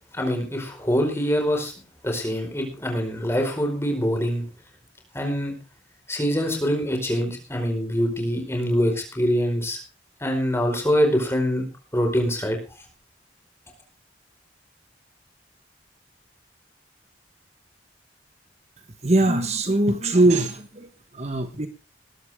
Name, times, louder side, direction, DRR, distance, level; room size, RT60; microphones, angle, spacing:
voice 1, 0.1-1.7 2.0-4.4 5.1-5.5 6.1-9.8 10.2-11.7 11.9-12.6, equal, 15° left, 3 dB, 4.7 m, -24 dB
voice 2, 19.0-20.9 21.1-21.7, right 2 dB, 35° right, 8 dB, 1.3 m, -21 dB
20.5 x 12.0 x 3.6 m, 0.32 s
head